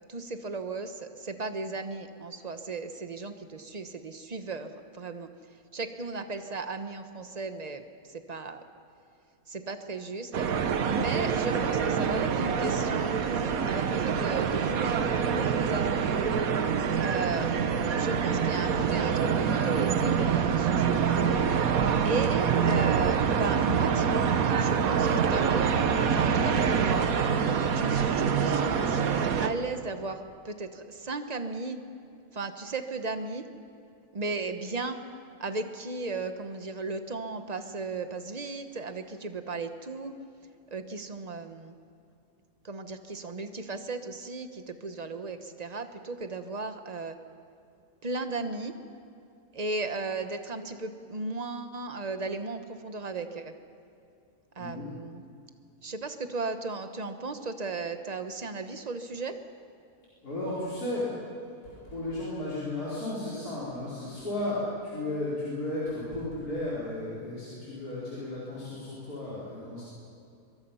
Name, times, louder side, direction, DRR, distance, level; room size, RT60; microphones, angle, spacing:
voice 1, 0.1-5.3 5.7-8.6 9.5-10.5 10.8-16.1 17.0-17.5 17.9-21.0 22.0-25.7 26.1-27.1 27.7-31.8 32.3-33.4 34.1-35.0 35.4-40.2 40.7-41.7 42.6-47.2 48.0-48.7 49.5-53.5 54.5-55.2 55.8-59.3, right 3 dB, 30° right, 8 dB, 1.0 m, -35 dB
sound 1, 10.3-29.5, right 6 dB, 65° right, 1.4 m, -26 dB
voice 2, 54.6-54.9 60.2-61.1 61.6-69.8, left 1 dB, 70° left, -9 dB, 5.2 m, -34 dB
23.5 x 23.0 x 5.7 m, 2.5 s
omnidirectional pair, 1.7 m